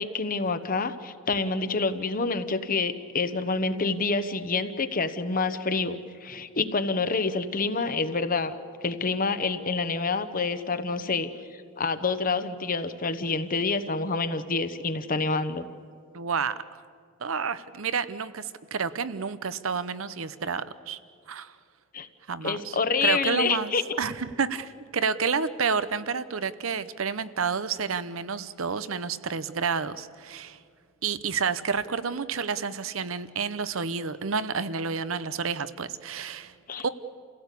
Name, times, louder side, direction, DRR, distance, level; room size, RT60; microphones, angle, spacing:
voice 1, 0.0-8.5 8.8-11.3 11.8-15.7 21.9-22.1 22.4-23.8 36.7-36.9, left 4 dB, 45° left, 10 dB, 1.1 m, -27 dB
voice 2, 16.1-16.8 17.2-21.0 21.3-21.6 22.3-30.6 31.0-36.5 36.8-36.9, right 5 dB, 85° right, 14 dB, 0.8 m, -30 dB
28.5 x 16.5 x 8.4 m, 2.2 s
head